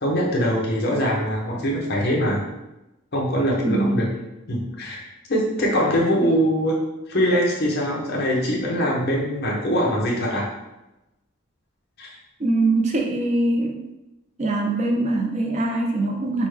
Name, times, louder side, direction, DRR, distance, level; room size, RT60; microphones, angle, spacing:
voice 1, 0.0-2.4 3.1-4.1 4.5-6.8 7.1-10.5 12.0-12.1, equal, 45° left, -3 dB, 0.8 m, -22 dB
voice 2, 3.6-4.1 12.4-13.8 14.4-16.5, right 2 dB, 35° right, 1 dB, 0.4 m, -22 dB
5.2 x 2.2 x 3.2 m, 0.96 s
head